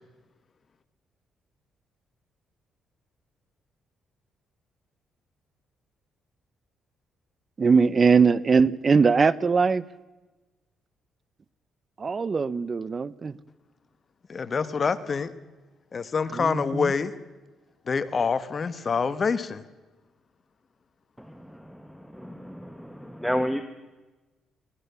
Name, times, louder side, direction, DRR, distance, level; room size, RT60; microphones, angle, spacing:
voice 1, 7.6-9.8 12.0-13.3 16.3-16.9, right 5 dB, 35° right, 20 dB, 0.8 m, -21 dB
voice 2, 14.3-15.3 15.9-17.1 17.9-19.6, left 5 dB, 40° left, 13 dB, 1.3 m, -26 dB
voice 3, 21.2-23.6, equal, ahead, 8 dB, 1.3 m, -32 dB
22.5 x 19.0 x 7.0 m, 1.2 s
cardioid pair, 90°, 0 cm